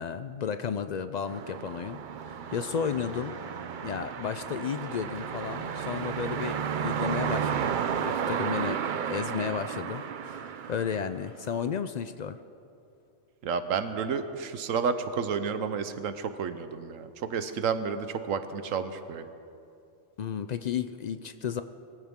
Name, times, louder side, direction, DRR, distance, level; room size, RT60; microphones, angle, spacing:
voice 1, 0.0-3.4 3.8-7.7 8.0-12.4 20.2-21.6, left 7 dB, 75° left, 10 dB, 0.3 m, -33 dB
sound 1, 1.3-11.5, right 8 dB, 55° right, 0.5 m, -33 dB
Applause, 2.2-11.6, left 1 dB, 40° left, 2.7 m, -52 dB
voice 2, 13.4-19.3, right 6 dB, 90° right, 10 dB, 1.2 m, -31 dB
22.0 x 15.0 x 3.7 m, 2.6 s
omnidirectional pair, 1.3 m